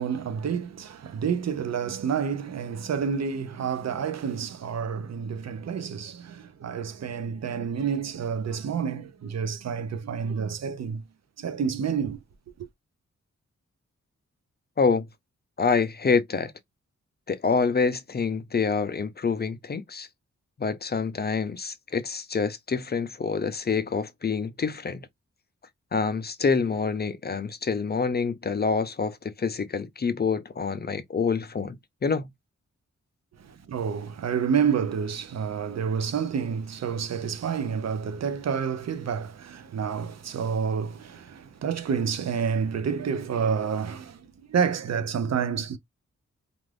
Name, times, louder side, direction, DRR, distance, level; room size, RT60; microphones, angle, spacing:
voice 1, 0.0-11.0 11.4-12.2 33.4-45.8, right 7 dB, 60° right, 0.6 m, -29 dB
voice 2, 15.6-16.5 17.3-20.1 20.6-25.0 25.9-32.3, left 5 dB, 35° left, 0.5 m, -26 dB
2.5 x 2.4 x 3.2 m
cardioid pair, 65°, 29 cm